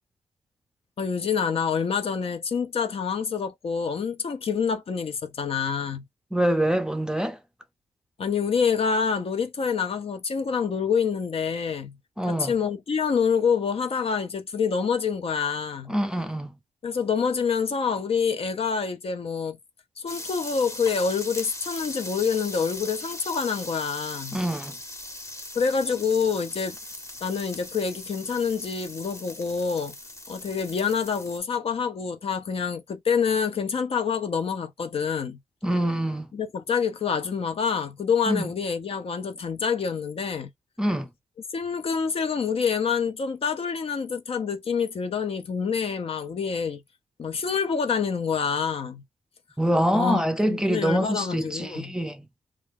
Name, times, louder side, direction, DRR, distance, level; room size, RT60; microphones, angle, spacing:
voice 1, 1.0-6.0 8.2-12.0 12.3-15.9 16.8-19.6 20.0-24.4 25.5-26.8 27.2-29.9 30.3-35.4 36.3-40.5 41.5-46.8 47.2-49.0 49.9-50.2 50.5-51.9, left 6 dB, 55° left, 0.5 m, -27 dB
voice 2, 6.3-7.4 12.2-12.6 15.9-16.5 24.3-24.8 35.6-36.3 38.3-38.5 40.8-41.1 49.6-52.3, right 1 dB, 5° right, 0.5 m, -25 dB
sound 1, 20.1-31.4, left 1 dB, 25° left, 0.9 m, -39 dB
2.3 x 2.2 x 3.4 m
supercardioid pair, 55°, 12 cm